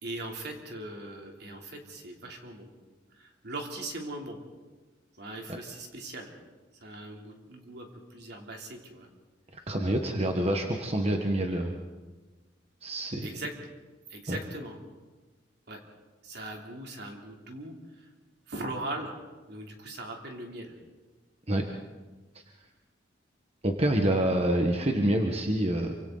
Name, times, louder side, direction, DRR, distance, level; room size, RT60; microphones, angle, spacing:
voice 1, 0.0-2.7 3.2-4.4 5.2-6.3 6.8-9.1 13.2-13.5 14.1-14.8 15.7-15.8 16.2-17.7 18.0-18.1 18.5-19.1 19.5-20.7, right 2 dB, 60° right, 1 dB, 3.3 m, -40 dB
voice 2, 9.7-11.7 12.8-13.4 14.3-14.4 21.5-21.6 23.6-25.9, right 1 dB, 35° right, 3 dB, 1.4 m, -27 dB
27.5 x 25.5 x 4.0 m, 1.3 s
head